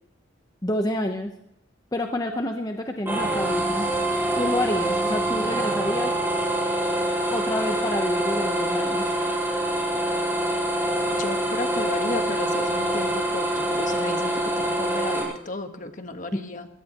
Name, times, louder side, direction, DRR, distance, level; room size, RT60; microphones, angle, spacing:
voice 1, 0.6-1.3 1.9-3.9 4.4-6.1 7.3-9.1 16.3-16.4, left 1 dB, 20° left, 4 dB, 0.9 m, -28 dB
sound 1, 3.1-15.2, right 1 dB, 10° right, 4.1 m, -25 dB
voice 2, 11.1-16.7, left 2 dB, 40° left, 6 dB, 1.5 m, -34 dB
22.0 x 17.5 x 3.0 m, 0.82 s
head